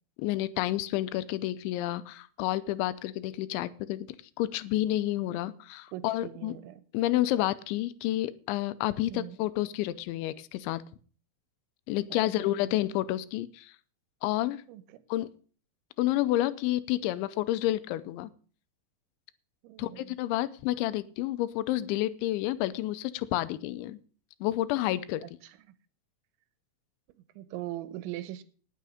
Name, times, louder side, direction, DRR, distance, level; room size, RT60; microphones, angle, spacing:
voice 1, 0.2-6.6 6.9-10.8 11.9-13.7 14.2-14.6 15.1-15.3 16.0-18.3 19.8-24.0 24.4-25.4, left 15 dB, 85° left, 15 dB, 3.1 m, -30 dB
voice 2, 5.9-6.8 9.1-9.4 12.1-12.8 14.7-14.8 19.6-20.1 27.4-28.4, right 14 dB, 85° right, 14 dB, 3.2 m, -40 dB
19.0 x 6.7 x 5.0 m, 0.41 s
omnidirectional pair, 5.2 m